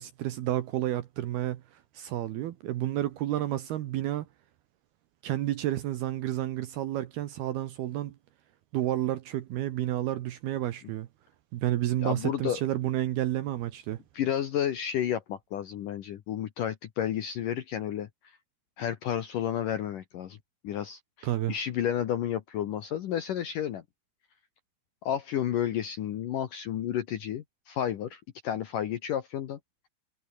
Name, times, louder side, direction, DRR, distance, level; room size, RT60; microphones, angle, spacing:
voice 1, 0.0-1.6 1.9-4.3 5.2-8.1 8.7-11.1 11.5-14.0 21.2-21.5, right 13 dB, 70° right, 2.5 m, -30 dB
voice 2, 12.0-12.6 14.1-18.1 18.8-20.4 20.6-23.8 25.0-29.6, left 10 dB, 80° left, 1.9 m, -31 dB
omnidirectional pair, 5.8 m